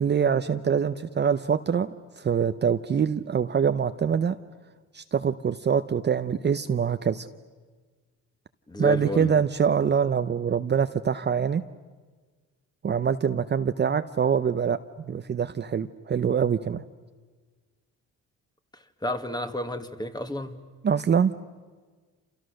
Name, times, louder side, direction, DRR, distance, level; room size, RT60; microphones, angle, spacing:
voice 1, 0.0-1.9 2.2-4.4 4.9-7.3 8.8-11.6 12.8-14.8 15.1-16.8 20.8-21.3, right 7 dB, 35° right, 10 dB, 0.8 m, -24 dB
voice 2, 8.7-9.3 18.7-20.6, left 1 dB, 15° left, 7 dB, 1.9 m, -31 dB
28.5 x 28.0 x 6.5 m, 1.4 s
cardioid pair, 90°, 30 cm